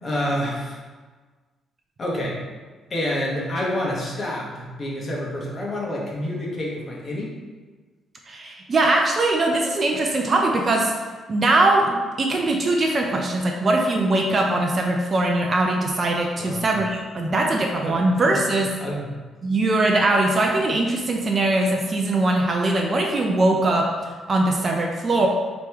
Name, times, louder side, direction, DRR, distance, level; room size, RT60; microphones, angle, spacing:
voice 1, 0.0-0.8 2.0-2.4 2.9-7.3 16.4-16.7 17.2-17.3 17.9-18.0 18.3-19.1, left 1 dB, 30° left, -4 dB, 1.1 m, -28 dB
voice 2, 8.3-10.9 11.3-18.7 19.4-25.3, right 2 dB, 30° right, 1 dB, 0.5 m, -21 dB
4.9 x 3.0 x 3.4 m, 1.4 s
cardioid pair, 140°, 0 cm